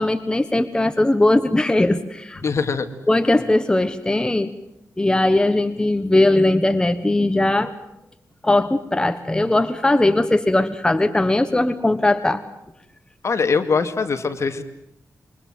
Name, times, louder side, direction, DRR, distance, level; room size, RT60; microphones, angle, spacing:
voice 1, 0.0-2.4 3.1-4.5 5.0-7.7 8.4-12.4, left 2 dB, 15° left, 9 dB, 1.3 m, -19 dB
voice 2, 2.4-2.9 13.2-14.6, left 5 dB, 55° left, 8 dB, 2.4 m, -22 dB
28.0 x 24.0 x 7.7 m, 0.82 s
wide cardioid pair, 115°, 6 cm